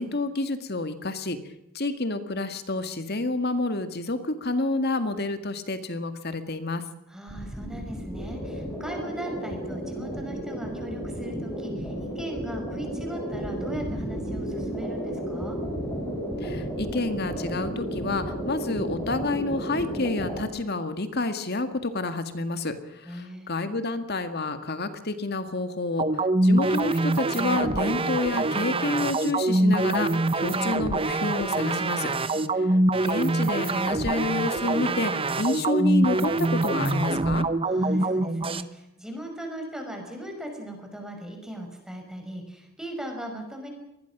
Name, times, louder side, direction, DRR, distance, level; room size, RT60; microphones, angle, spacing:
voice 1, 0.0-1.4 1.7-6.8 16.4-32.1 33.0-35.1 35.4-37.5, left 2 dB, 50° left, 9 dB, 2.0 m, -29 dB
voice 2, 7.1-15.6 23.0-23.5 32.3-32.8 37.7-43.7, right 1 dB, 5° right, 3 dB, 5.4 m, -39 dB
sound 1, 7.3-20.4, equal, 15° left, 7.3 m, -33 dB
sound 2, 26.0-38.6, right 2 dB, 25° right, 0.9 m, -24 dB
24.5 x 20.5 x 6.1 m, 0.89 s
head